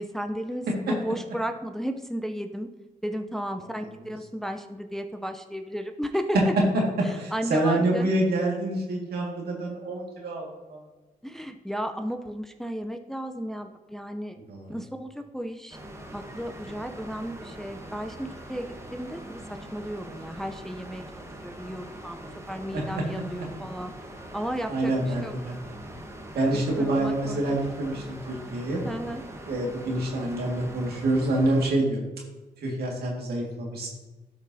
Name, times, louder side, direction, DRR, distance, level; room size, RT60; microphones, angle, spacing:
voice 1, 0.0-2.7 3.0-6.5 7.0-8.1 11.2-14.4 14.7-15.8 16.1-22.2 22.5-23.9 24.3-25.3 26.5-27.6 28.8-29.2, equal, ahead, 6 dB, 0.6 m, -34 dB
voice 2, 7.2-10.8 14.5-14.7 22.7-22.8 24.7-25.6 26.3-28.8 29.5-32.0 32.6-33.9, right 1 dB, 75° right, -2 dB, 2.0 m, -27 dB
sound 1, 15.7-31.7, right 1 dB, 15° right, 1.2 m, -42 dB
12.0 x 5.2 x 2.8 m, 1.1 s
cardioid pair, 60°, 16 cm